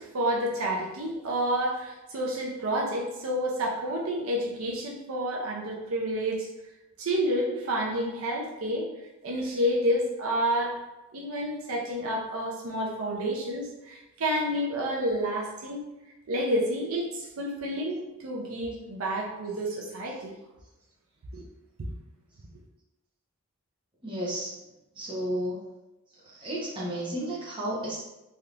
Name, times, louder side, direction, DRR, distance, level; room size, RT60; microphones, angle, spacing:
voice 1, 0.0-6.5 7.0-8.9 9.2-10.8 11.1-15.8 16.3-20.3 21.3-21.4, equal, 70° right, -2 dB, 0.5 m, -29 dB
voice 2, 24.0-24.5 24.9-25.6 26.3-28.0, right 1 dB, 20° right, -7 dB, 0.8 m, -32 dB
3.3 x 2.8 x 2.4 m, 0.97 s
head